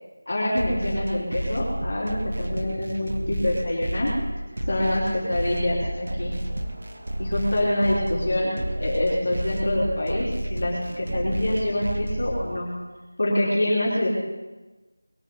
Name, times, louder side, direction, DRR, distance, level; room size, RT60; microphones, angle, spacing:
voice 1, 0.3-4.1 4.7-6.3 7.2-12.7 13.2-14.1, left 1 dB, 40° left, -7 dB, 4.6 m, -25 dB
sound 1, 0.6-12.6, right 1 dB, 50° right, 1.7 m, -30 dB
21.5 x 7.5 x 8.2 m, 1.2 s
figure-of-eight pair, 180°, 0 cm